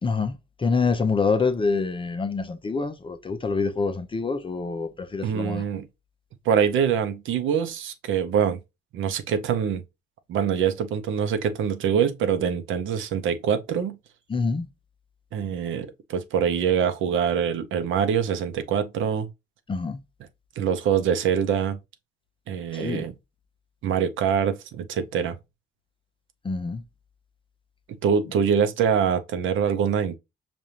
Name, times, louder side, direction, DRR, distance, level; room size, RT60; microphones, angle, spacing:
voice 1, 0.0-5.6 14.3-14.7 19.7-20.0 22.7-23.1 26.4-26.8, left 4 dB, 25° left, 0.6 m, -26 dB
voice 2, 5.2-5.9 6.4-8.6 8.9-9.8 10.3-14.0 15.3-19.3 20.6-21.8 22.5-23.1 23.8-25.4 28.0-30.2, right 7 dB, 80° right, 0.7 m, -24 dB
5.1 x 2.5 x 2.8 m
cardioid pair, 90°, 20 cm